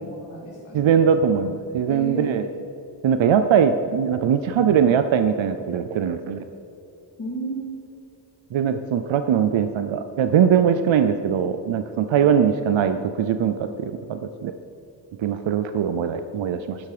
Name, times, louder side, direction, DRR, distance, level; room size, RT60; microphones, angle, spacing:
voice 1, 0.0-0.8 1.9-2.5 7.2-7.7, right 1 dB, 40° left, -7 dB, 2.6 m, -33 dB
voice 2, 0.7-2.5 3.0-6.4 8.5-14.5 15.2-16.8, right 8 dB, 80° right, 9 dB, 0.7 m, -21 dB
12.5 x 10.5 x 4.9 m, 2.8 s
wide cardioid pair, 175°, 46 cm